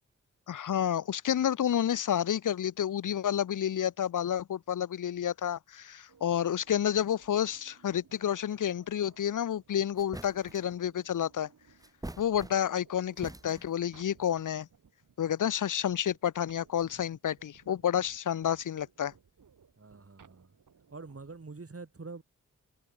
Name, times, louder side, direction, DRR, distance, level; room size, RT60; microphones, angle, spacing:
voice 1, 0.5-11.5 12.2-14.7 15.2-19.1, left 9 dB, 75° left, 0.7 m, -30 dB
sound 1, 6.1-21.5, right 6 dB, 80° right, 5.1 m, -62 dB
sound 2, 10.0-10.8 11.8-12.9 13.2-13.9, right 1 dB, 10° right, 1.1 m, -45 dB
voice 2, 19.8-20.5 20.9-22.2, right 3 dB, 45° right, 4.3 m, -45 dB
cardioid pair, 40°, 31 cm